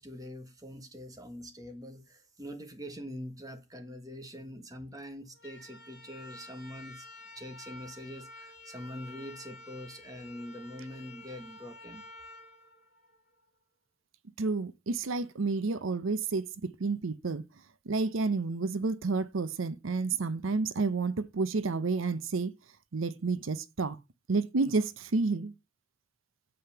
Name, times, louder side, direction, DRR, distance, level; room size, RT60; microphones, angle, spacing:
voice 1, 0.0-7.0 7.3-12.1, equal, 20° right, 1.4 m, -44 dB
sound 1, 5.3-13.5, left 2 dB, 55° left, 2.7 m, -50 dB
voice 2, 14.4-17.4 17.9-22.5 22.9-24.0 24.3-25.5, right 3 dB, 85° right, 0.7 m, -30 dB
7.8 x 5.1 x 5.6 m
head